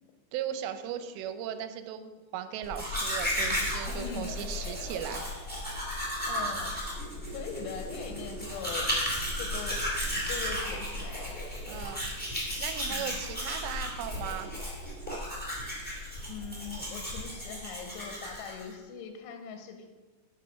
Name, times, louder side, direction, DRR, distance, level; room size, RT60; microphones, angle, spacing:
voice 1, 0.3-5.3 11.7-12.0 12.6-14.5, right 9 dB, 85° right, 9 dB, 2.8 m, -37 dB
Domestic sounds home sounds, 2.6-18.7, equal, 5° left, 0.7 m, -34 dB
voice 2, 3.9-4.3 6.3-6.8 7.3-8.9 9.4-9.8 10.3-11.3 12.9-13.2 16.3-19.9, left 6 dB, 90° left, 5 dB, 2.9 m, -41 dB
9.0 x 5.4 x 5.6 m, 1.3 s
omnidirectional pair, 4.9 m